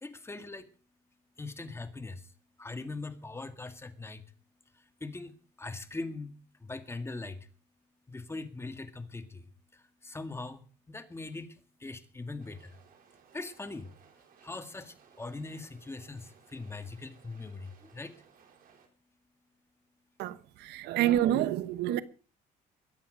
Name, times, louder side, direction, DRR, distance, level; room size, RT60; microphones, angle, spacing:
voice 1, 0.0-0.7 1.4-2.2 2.6-4.2 5.0-5.3 5.6-6.3 6.6-7.4 8.1-9.4 10.1-10.6 10.9-11.5 11.8-12.6 13.3-13.8 14.4-16.2 16.5-17.7 17.9-18.1, left 3 dB, 15° left, 2.0 m, -40 dB
sound 1, 12.4-18.9, right 7 dB, 60° right, 4.2 m, -61 dB
voice 2, 20.2-22.0, right 12 dB, 85° right, 1.0 m, -28 dB
22.0 x 9.0 x 5.2 m
cardioid pair, 110°, 17 cm